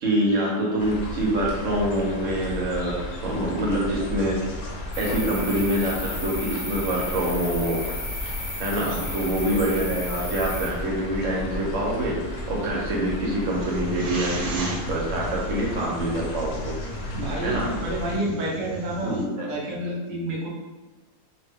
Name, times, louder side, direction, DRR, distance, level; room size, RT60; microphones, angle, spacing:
voice 1, 0.0-3.0 3.2-4.4 5.0-7.8 8.2-8.3 8.6-17.7 19.0-19.5, right 1 dB, 65° right, -3 dB, 1.0 m, -26 dB
sound 1, 0.8-18.2, left 2 dB, 80° left, 1.1 m, -34 dB
sound 2, 4.9-10.7, left 1 dB, 35° left, 0.5 m, -34 dB
voice 2, 8.8-9.1 17.1-20.5, right 1 dB, 50° right, -4 dB, 0.6 m, -29 dB
sound 3, 13.5-19.2, equal, 80° right, 1.2 m, -36 dB
2.5 x 2.1 x 3.5 m, 1.3 s
omnidirectional pair, 1.5 m